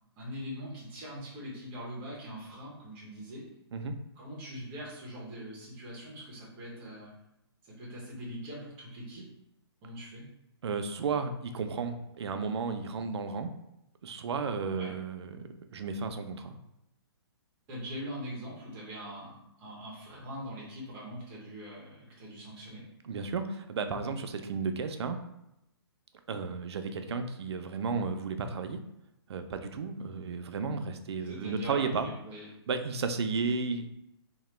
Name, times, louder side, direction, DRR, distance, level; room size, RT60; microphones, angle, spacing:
voice 1, 0.2-3.4 4.2-7.1 7.8-9.3 9.8-10.3 14.8-14.9 17.7-22.8 31.2-32.5, equal, 10° right, -5 dB, 0.5 m, -42 dB
voice 2, 10.6-13.5 14.0-16.6 23.0-25.2 26.3-28.8 29.3-32.1 32.7-33.9, right 4 dB, 75° right, 8 dB, 0.4 m, -33 dB
2.9 x 2.1 x 3.1 m, 0.85 s
hypercardioid pair, 175°, 14 cm